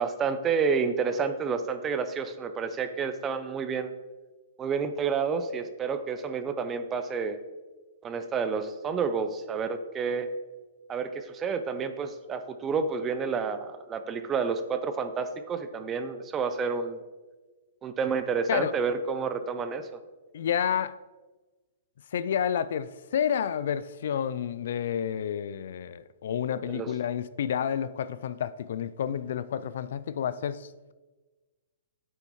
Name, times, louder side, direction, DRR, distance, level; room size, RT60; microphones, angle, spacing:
voice 1, 0.0-3.9 4.6-7.4 8.0-10.3 10.9-17.0 17.8-19.9 26.7-26.9, right 5 dB, 15° right, 0.5 m, -30 dB
voice 2, 20.3-20.9 22.1-30.9, left 8 dB, 60° left, 0.3 m, -30 dB
9.0 x 7.7 x 3.1 m
hypercardioid pair, 165°, 0 cm